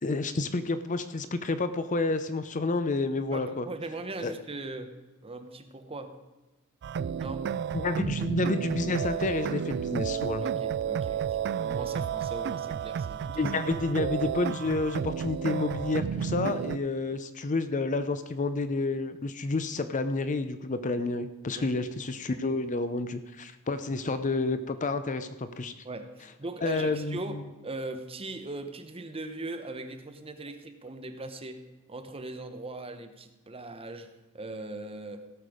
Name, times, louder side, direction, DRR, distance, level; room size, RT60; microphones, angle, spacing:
voice 1, 0.0-3.7 4.2-4.3 7.7-10.4 13.4-25.7 26.6-27.4, left 3 dB, 35° left, 11 dB, 0.6 m, -30 dB
voice 2, 3.3-4.9 5.2-6.1 7.2-7.5 10.4-13.5 21.5-21.8 24.1-24.2 25.8-31.6 31.9-34.1 34.3-35.2, right 2 dB, 25° right, 7 dB, 1.0 m, -40 dB
sound 1, 6.8-16.8, right 8 dB, 50° right, 0.3 m, -31 dB
16.5 x 6.7 x 5.0 m, 1.1 s
head